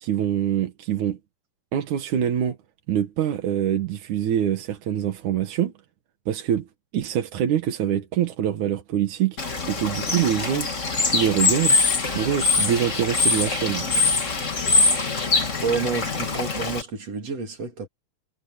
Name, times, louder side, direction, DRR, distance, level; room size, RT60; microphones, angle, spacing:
voice 1, 0.0-1.2 1.7-2.6 2.9-5.7 6.3-6.7 6.9-11.8 12.1-13.9, right 10 dB, 85° right, 3.1 m, -25 dB
Bird / Water, 9.4-16.8, left 4 dB, 30° left, 2.1 m, -23 dB
voice 2, 15.6-17.9, right 5 dB, 60° right, 4.5 m, -29 dB
omnidirectional pair, 3.3 m